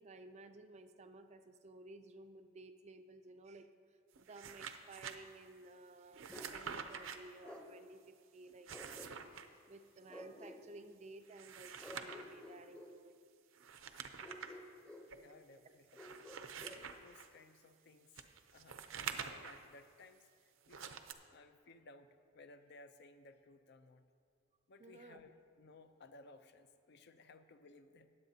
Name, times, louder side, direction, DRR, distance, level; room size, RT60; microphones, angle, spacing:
voice 1, 0.0-3.7 4.2-9.1 9.7-13.2 24.8-25.3, right 2 dB, 35° right, 9 dB, 0.4 m, -56 dB
sound 1, 4.1-5.2 6.1-7.2 8.5-9.5 11.2-12.3 13.6-14.6 15.1-15.2 15.9-17.3 18.2-19.6 20.7-21.1, right 7 dB, 80° right, 0.6 m, -47 dB
Bark, 6.3-6.6 7.4-7.7 8.7-9.4 10.1-10.6 11.8-12.9 14.2-15.1 15.9-16.8, left 1 dB, 5° left, 0.7 m, -52 dB
voice 2, 14.9-16.1 16.6-18.2 18.5-20.8 21.3-24.1 24.7-28.1, left 3 dB, 55° left, 9 dB, 0.5 m, -60 dB
19.0 x 8.0 x 2.8 m, 2.2 s
head